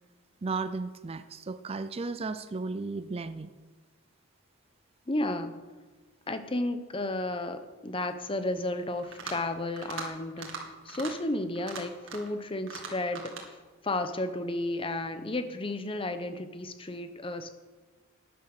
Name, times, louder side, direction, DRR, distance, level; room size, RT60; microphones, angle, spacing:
voice 1, 0.4-3.5, right 3 dB, 25° right, 12 dB, 0.4 m, -34 dB
voice 2, 5.1-5.6 6.3-13.6 13.8-17.5, left 2 dB, 25° left, 9 dB, 0.8 m, -33 dB
sound 1, 9.0-9.5 9.8-10.1 10.4-10.6 10.9-11.1 11.6-12.3 12.7-13.5, right 5 dB, 60° right, 2.3 m, -40 dB
12.0 x 10.5 x 6.6 m, 1.3 s
head